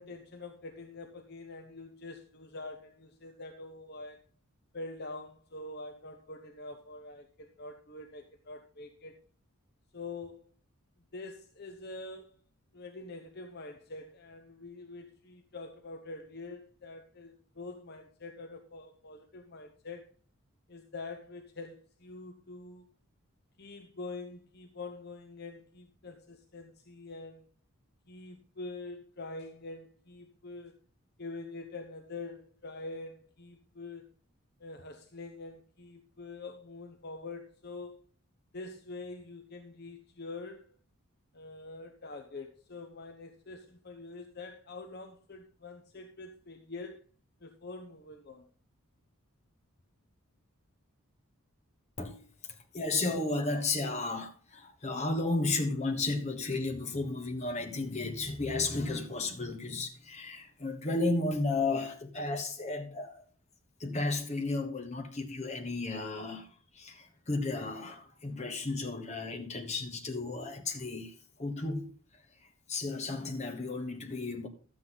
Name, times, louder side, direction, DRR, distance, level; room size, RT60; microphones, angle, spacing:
voice 1, 0.0-4.2 4.7-9.2 9.9-10.5 11.1-12.4 12.7-20.0 20.7-22.9 23.6-27.4 28.1-30.7 31.2-34.1 34.6-38.0 38.5-40.7 41.3-47.0 47.4-48.5, left 3 dB, 45° left, 0.8 m, -45 dB
voice 2, 52.7-63.2 63.8-66.5 66.7-71.1 71.4-71.9 72.7-74.5, left 3 dB, 30° left, 1.2 m, -33 dB
11.5 x 8.0 x 3.9 m
head